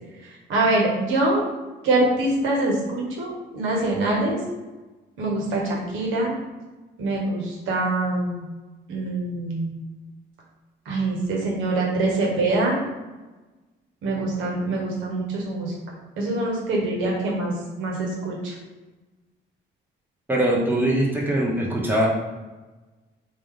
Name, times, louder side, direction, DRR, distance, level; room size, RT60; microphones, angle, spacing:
voice 1, 0.5-1.5 1.8-4.4 5.2-6.3 7.0-8.4 8.9-9.7 10.8-12.8 14.0-15.7 16.2-18.5, right 2 dB, 90° right, -2 dB, 1.1 m, -24 dB
voice 2, 20.3-22.1, right 1 dB, 10° right, -4 dB, 1.1 m, -22 dB
3.7 x 2.7 x 3.2 m, 1.2 s
cardioid pair, 90°, 20 cm